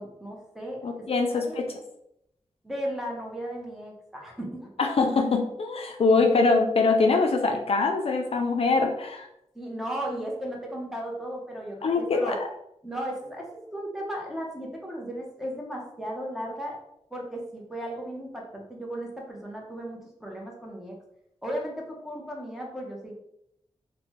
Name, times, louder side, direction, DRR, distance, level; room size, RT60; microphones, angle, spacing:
voice 1, 0.0-1.0 1.3-1.7 2.6-4.7 9.5-12.4 12.8-16.8 17.1-21.0 21.4-23.1, right 1 dB, 5° right, -1 dB, 0.8 m, -35 dB
voice 2, 0.8-1.7 4.8-9.3 11.8-12.3, left 3 dB, 60° left, 3 dB, 0.4 m, -23 dB
3.2 x 2.1 x 2.9 m, 0.78 s
wide cardioid pair, 80°, 11 cm